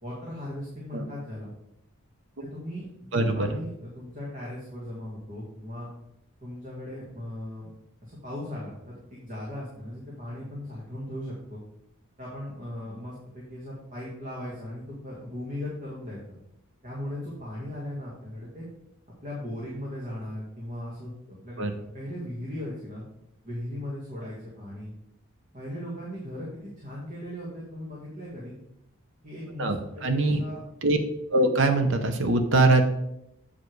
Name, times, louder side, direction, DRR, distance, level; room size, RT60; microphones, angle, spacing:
voice 1, 0.0-1.5 2.4-5.9 6.4-7.7 8.0-11.6 12.2-16.2 16.8-18.7 19.2-23.0 23.4-24.9 25.5-28.5 29.2-30.6, left 1 dB, 35° right, -5 dB, 1.9 m, -38 dB
voice 2, 3.1-3.5 21.6-21.7 29.6-30.4 30.8-31.0 31.3-32.8, right 2 dB, 60° right, 7 dB, 0.8 m, -22 dB
8.2 x 5.0 x 4.7 m, 0.81 s
head